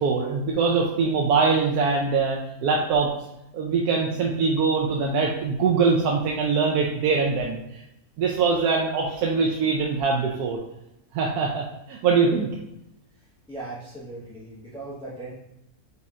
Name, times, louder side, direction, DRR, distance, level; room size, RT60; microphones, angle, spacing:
voice 1, 0.0-3.1 3.5-7.6 8.2-10.6 11.1-12.5, right 4 dB, 90° right, -1 dB, 1.1 m, -23 dB
voice 2, 13.5-15.3, right 2 dB, 5° left, -10 dB, 1.0 m, -38 dB
4.2 x 4.1 x 2.4 m, 0.86 s
omnidirectional pair, 1.6 m